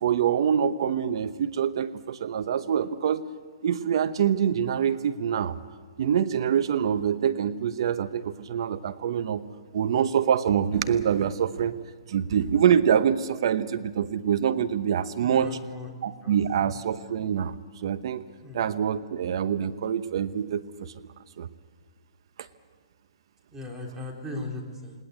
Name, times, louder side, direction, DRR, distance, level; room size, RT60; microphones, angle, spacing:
voice 1, 0.0-3.2 3.6-5.6 6.0-9.4 9.7-11.8 12.1-15.6 16.0-17.5 17.8-18.2 18.5-21.1 21.4-21.5, right 8 dB, 60° right, 13 dB, 0.9 m, -25 dB
voice 2, 15.2-15.9 16.2-16.8 18.4-18.7 23.5-24.9, left 2 dB, 15° right, 0 dB, 3.6 m, -38 dB
20.0 x 19.0 x 8.2 m, 1.5 s
hypercardioid pair, 140°, 3 cm